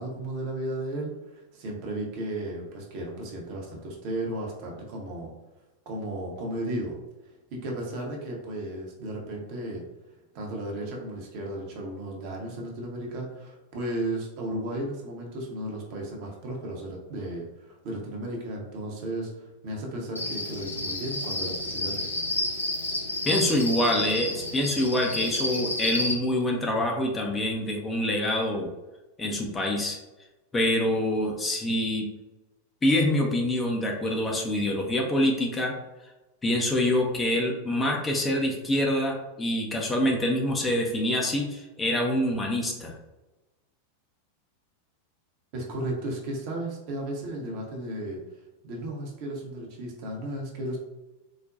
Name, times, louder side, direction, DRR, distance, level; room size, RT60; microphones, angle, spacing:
voice 1, 0.0-5.3 5.9-7.0 7.5-9.9 10.3-22.1 45.5-48.2 48.6-50.8, right 1 dB, 45° right, -1 dB, 0.8 m, -34 dB
Cricket, 20.2-26.1, left 1 dB, 80° left, 0.6 m, -30 dB
voice 2, 23.3-28.7 29.2-30.0 30.5-32.1 32.8-35.7 36.4-42.9, left 1 dB, 15° left, 0 dB, 0.5 m, -26 dB
4.0 x 2.2 x 2.5 m, 1.1 s
figure-of-eight pair, 90°, 0 cm